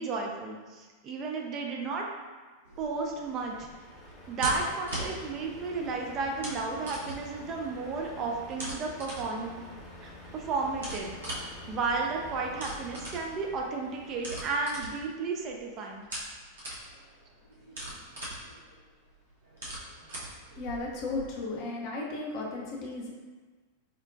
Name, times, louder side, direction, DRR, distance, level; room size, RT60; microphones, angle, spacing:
voice 1, 0.0-2.1 2.8-3.7 4.3-9.6 10.0-11.1 11.7-16.1, right 4 dB, 35° right, 0 dB, 0.4 m, -33 dB
sound 1, 2.6-21.2, right 1 dB, 65° right, 0.8 m, -42 dB
Truck, 3.2-14.4, left 1 dB, 20° left, 0.9 m, -48 dB
voice 2, 20.6-23.1, left 3 dB, 45° left, -2 dB, 0.6 m, -35 dB
4.3 x 2.1 x 2.5 m, 1.4 s
figure-of-eight pair, 90°, 0 cm